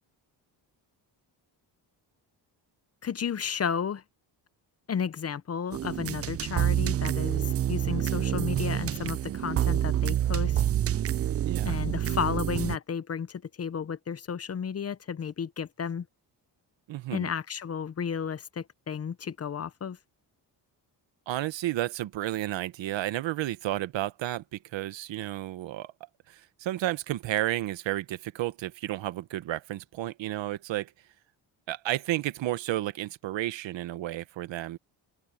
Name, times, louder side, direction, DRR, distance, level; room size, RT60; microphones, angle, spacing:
voice 1, 3.0-4.0 4.9-10.6 11.6-16.1 17.1-20.0, left 7 dB, 35° left, 0.7 m, -33 dB
sound 1, 5.7-12.8, right 11 dB, 35° right, 0.4 m, -27 dB
voice 2, 11.4-11.8 16.9-17.3 21.3-25.9 26.3-30.9 31.7-34.8, right 14 dB, 80° right, 1.1 m, -32 dB
cardioid pair, 120°, 44 cm